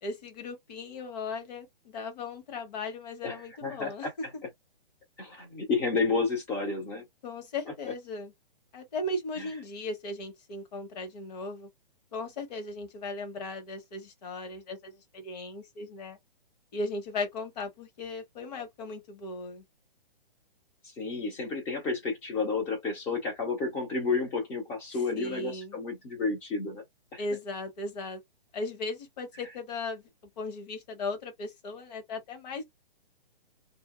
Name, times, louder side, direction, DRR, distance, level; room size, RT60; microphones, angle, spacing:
voice 1, 0.0-4.1 7.2-8.3 8.7-11.7 12.1-16.2 16.7-19.6 25.1-25.7 27.2-28.2 28.5-30.0 30.4-32.6, left 2 dB, 45° left, 1.4 m, -37 dB
voice 2, 3.2-4.1 5.2-7.0 9.4-9.5 20.8-26.8 27.1-27.2, left 4 dB, 5° left, 0.4 m, -31 dB
2.7 x 2.6 x 2.3 m
hypercardioid pair, 150°, 29 cm